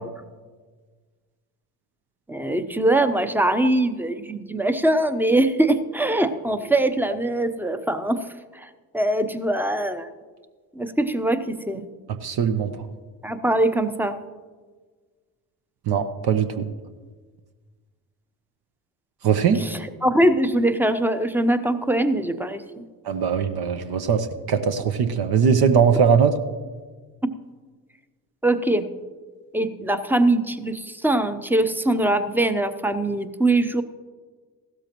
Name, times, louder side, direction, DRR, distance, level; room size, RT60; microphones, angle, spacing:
voice 1, 2.3-8.2 8.5-8.7 8.9-10.1 10.7-11.8 13.2-14.2 19.5-22.6 28.4-28.9 29.5-33.8, right 1 dB, 5° right, 10 dB, 0.8 m, -22 dB
voice 2, 12.2-12.7 15.9-16.7 19.2-19.6 23.1-26.3, right 7 dB, 50° right, 8 dB, 0.9 m, -20 dB
15.5 x 12.5 x 3.0 m, 1.5 s
hypercardioid pair, 55°, 47 cm